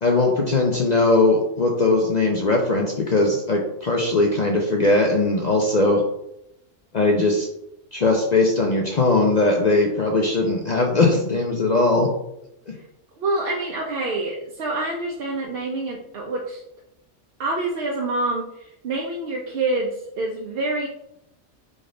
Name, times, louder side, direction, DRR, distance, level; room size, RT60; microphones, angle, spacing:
voice 1, 0.0-6.0 6.9-7.5 7.9-12.1, left 2 dB, 50° left, 1 dB, 0.5 m, -19 dB
voice 2, 13.2-16.6 17.4-18.5 18.8-19.9 20.2-20.9, right 2 dB, 55° right, -1 dB, 0.7 m, -26 dB
3.9 x 3.4 x 3.7 m, 0.82 s
omnidirectional pair, 1.3 m